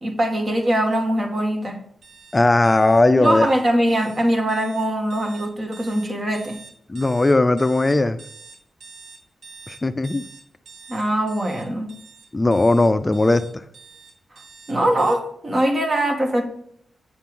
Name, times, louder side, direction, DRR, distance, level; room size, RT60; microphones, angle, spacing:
voice 1, 0.0-1.8 3.2-6.6 10.9-11.9 14.7-16.4, right 1 dB, 40° right, 3 dB, 2.1 m, -22 dB
sound 1, 2.0-15.1, right 4 dB, 65° right, 1.7 m, -45 dB
voice 2, 2.3-3.5 6.9-8.2 9.7-10.2 12.3-13.4, left 2 dB, 25° left, 10 dB, 0.5 m, -17 dB
8.4 x 7.2 x 3.8 m, 0.66 s
cardioid pair, 70°, 0 cm